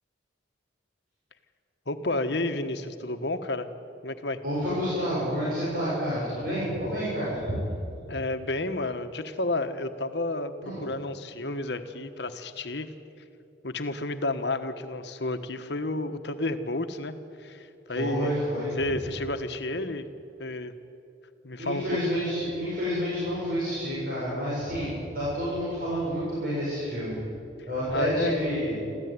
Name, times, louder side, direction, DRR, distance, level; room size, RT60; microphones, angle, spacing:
voice 1, 1.9-3.7 4.0-4.4 8.1-12.9 13.6-18.3 18.8-20.1 20.4-20.7 21.4-22.0 27.9-28.4, left 2 dB, 60° left, 9 dB, 1.3 m, -31 dB
voice 2, 4.4-7.6 10.6-10.8 17.9-18.7 21.6-27.2 27.7-28.8, equal, 50° right, -8 dB, 7.4 m, -29 dB
25.5 x 14.5 x 9.6 m, 2.7 s
head